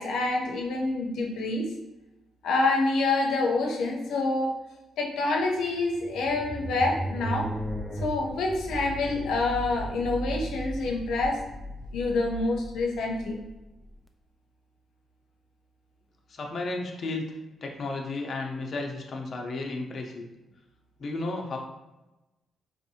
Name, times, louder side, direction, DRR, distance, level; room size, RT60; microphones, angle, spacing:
voice 1, 0.0-1.7 2.4-4.6 5.0-7.5 8.0-11.4 11.9-13.4, left 3 dB, 85° left, 1 dB, 0.7 m, -27 dB
sound 1, 5.6-13.9, right 1 dB, 5° right, 0.3 m, -36 dB
voice 2, 16.3-17.2 17.6-20.3 21.0-21.6, left 2 dB, 45° left, 1 dB, 0.6 m, -33 dB
4.2 x 2.6 x 2.7 m, 1.0 s
cardioid pair, 125°, 0 cm